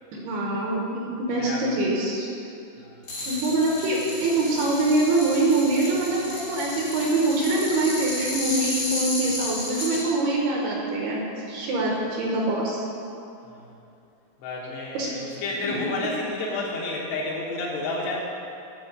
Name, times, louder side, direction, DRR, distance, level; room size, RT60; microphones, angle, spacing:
voice 1, 0.1-2.3 3.3-11.2 11.5-12.8 14.9-15.1 15.6-15.8, right 2 dB, 75° right, -3 dB, 2.8 m, -24 dB
voice 2, 1.4-1.8 2.8-3.1 13.4-13.7 14.4-18.2, left 2 dB, 75° left, -4 dB, 3.2 m, -31 dB
sound 1, 3.0-10.0, left 2 dB, 55° left, 0.9 m, -32 dB
8.8 x 4.3 x 6.8 m, 2.7 s
omnidirectional pair, 5.0 m